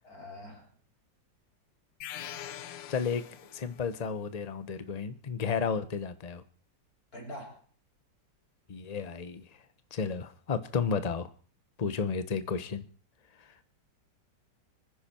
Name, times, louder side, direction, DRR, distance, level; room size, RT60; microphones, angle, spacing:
voice 1, 0.0-0.7 7.1-7.6, left 1 dB, 55° left, 0 dB, 4.1 m, -44 dB
sound 1, 2.0-3.9, left 10 dB, 85° left, 1.6 m, -43 dB
voice 2, 2.9-3.2 3.5-6.4 8.7-9.4 9.9-11.3 11.8-12.8, left 5 dB, 30° left, 12 dB, 0.8 m, -32 dB
25.5 x 10.0 x 4.4 m, 0.42 s
omnidirectional pair, 2.0 m